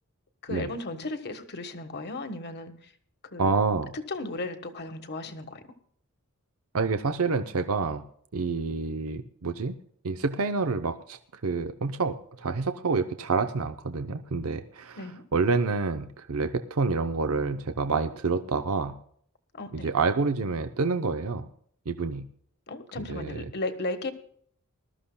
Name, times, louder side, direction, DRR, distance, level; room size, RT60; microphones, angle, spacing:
voice 1, 0.4-2.9 3.3-3.5 3.9-5.6 15.0-15.2 19.5-19.9 22.7-24.1, left 2 dB, 50° left, 7 dB, 1.4 m, -35 dB
voice 2, 3.4-3.9 6.7-8.0 8.3-9.8 10.0-15.0 15.3-18.9 19.7-21.5 21.9-22.3 23.0-23.5, right 4 dB, 65° right, 8 dB, 0.7 m, -28 dB
21.0 x 13.0 x 2.3 m, 0.62 s
head